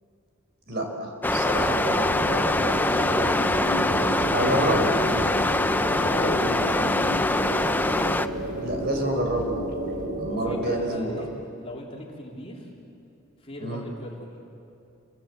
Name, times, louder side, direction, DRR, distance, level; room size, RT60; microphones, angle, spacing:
voice 1, 0.7-1.7 4.3-4.8 6.4-6.6 8.6-9.8 10.2-11.3 13.6-13.8, right 1 dB, 50° right, 3 dB, 4.9 m, -28 dB
sound 1, 1.2-8.3, left 2 dB, 10° left, 0.5 m, -24 dB
voice 2, 1.5-5.4 6.0-7.7 10.3-11.3 11.6-12.7 13.4-14.3, left 1 dB, 25° left, -2 dB, 3.5 m, -38 dB
sound 2, 1.5-11.0, right 1 dB, 65° right, 3.2 m, -31 dB
sound 3, 3.2-11.7, left 2 dB, 90° left, 1.7 m, -42 dB
28.0 x 25.0 x 7.8 m, 2.6 s
head